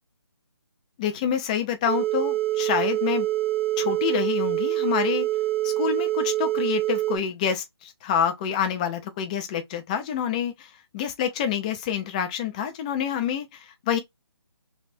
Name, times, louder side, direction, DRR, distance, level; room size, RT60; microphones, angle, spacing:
voice 1, 1.0-3.3 3.8-5.3 5.6-14.0, left 8 dB, 15° left, 0.5 m, -27 dB
sound 1, 1.9-7.2, right 15 dB, 35° right, 1.1 m, -25 dB
3.4 x 2.4 x 4.2 m
hypercardioid pair, 160°, 13 cm